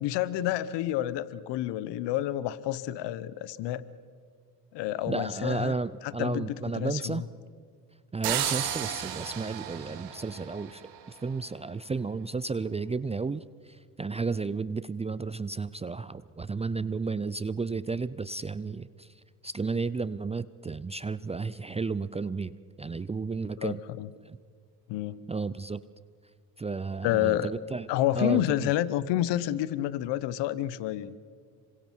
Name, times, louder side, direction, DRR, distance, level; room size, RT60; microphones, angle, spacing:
voice 1, 0.0-3.8 4.7-5.7 6.0-7.3 23.6-24.1 24.9-25.2 27.0-27.5 27.9-31.2, left 13 dB, 65° left, 17 dB, 1.1 m, -29 dB
voice 2, 5.1-7.2 8.1-19.1 19.4-23.8 24.3-24.4 25.3-25.8 26.6-27.9 28.1-28.7, right 4 dB, 15° right, 16 dB, 0.5 m, -33 dB
sound 1, 8.2-11.1, right 10 dB, 60° right, 2.7 m, -33 dB
27.0 x 25.0 x 4.6 m, 2.1 s
hypercardioid pair, 70°, 46 cm